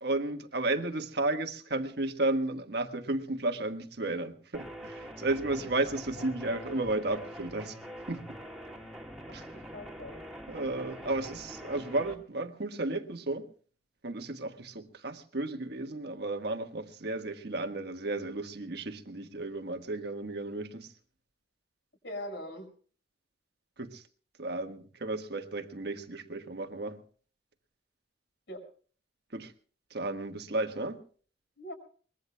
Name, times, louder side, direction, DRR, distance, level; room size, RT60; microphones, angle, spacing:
voice 1, 0.0-7.8 8.1-8.4 9.3-9.5 10.5-13.5 14.0-20.9 23.8-24.0 24.4-27.0 29.3-29.5 29.9-31.0, right 2 dB, 60° right, 1.5 m, -33 dB
sound 1, 4.5-12.2, equal, ahead, 2.5 m, -45 dB
voice 2, 9.5-10.1 22.0-22.7 28.5-28.6 31.6-31.7, left 1 dB, 65° left, 5.5 m, -41 dB
23.5 x 21.0 x 2.2 m
head